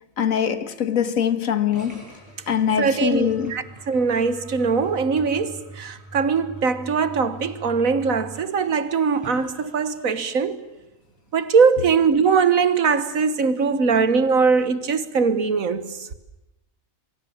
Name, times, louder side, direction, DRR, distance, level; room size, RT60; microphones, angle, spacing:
voice 1, 0.2-2.0 2.5-3.5, left 8 dB, 80° left, 1.7 m, -23 dB
sound 1, 1.7-10.5, right 3 dB, 10° right, 7.4 m, -43 dB
voice 2, 2.8-10.6 11.3-15.9, right 5 dB, 80° right, 1.7 m, -21 dB
28.0 x 22.5 x 7.3 m
omnidirectional pair, 1.4 m